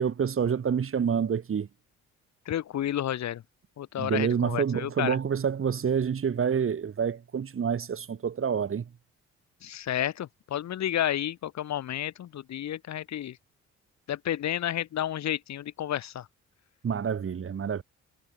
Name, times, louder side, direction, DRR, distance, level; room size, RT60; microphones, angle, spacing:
voice 1, 0.0-1.7 4.0-8.9 16.8-17.8, right 7 dB, 45° right, 3.0 m, -27 dB
voice 2, 2.5-3.4 3.8-5.2 9.6-13.4 14.1-16.3, left 11 dB, 65° left, 1.6 m, -31 dB
cardioid pair, 90°, 30 cm